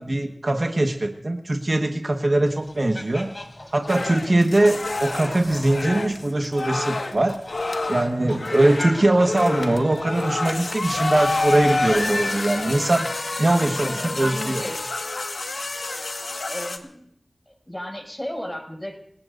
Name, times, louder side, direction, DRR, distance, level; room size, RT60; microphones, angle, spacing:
voice 1, 0.0-3.3 3.7-7.4 7.9-13.1 13.4-14.7, right 2 dB, 50° right, 4 dB, 1.4 m, -21 dB
sound 1, 2.5-12.0, left 1 dB, 40° left, 3.7 m, -40 dB
sound 2, 3.9-16.8, left 2 dB, 80° left, 1.6 m, -28 dB
voice 2, 13.6-15.0 16.5-17.1 17.5-18.9, equal, 20° left, 1 dB, 6.3 m, -34 dB
29.0 x 18.0 x 2.6 m, 0.71 s
wide cardioid pair, 45°, 0 cm